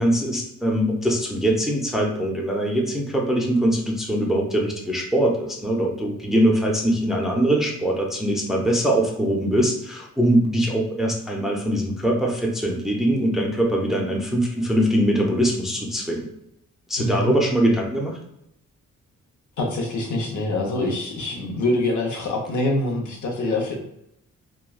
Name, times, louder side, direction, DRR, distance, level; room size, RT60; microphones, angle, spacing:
voice 1, 0.0-16.3 16.9-18.2, right 1 dB, ahead, -1 dB, 0.5 m, -22 dB
voice 2, 17.0-17.3 19.6-23.8, left 2 dB, 70° left, 0 dB, 0.8 m, -25 dB
3.0 x 2.3 x 2.3 m, 0.78 s
cardioid pair, 95°, 31 cm